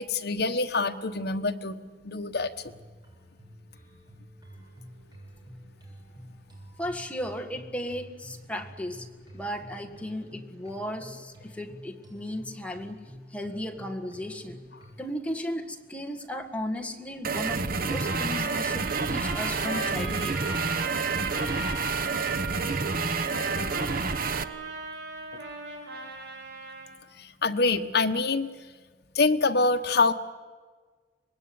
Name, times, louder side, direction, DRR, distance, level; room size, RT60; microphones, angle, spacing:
voice 1, 0.0-1.8 2.0-2.5 27.2-28.5 29.1-30.1, left 3 dB, 65° left, 7 dB, 1.2 m, -25 dB
sound 1, 2.3-15.0, equal, 25° right, 7.5 m, -49 dB
voice 2, 6.8-9.1 9.3-13.0 13.3-14.6 15.0-20.4, equal, 10° left, 4 dB, 1.8 m, -35 dB
sound 2, 17.2-24.4, right 4 dB, 55° right, 1.0 m, -29 dB
Trumpet, 17.8-26.9, right 3 dB, 70° right, 5.2 m, -37 dB
25.0 x 20.5 x 9.6 m, 1.5 s
head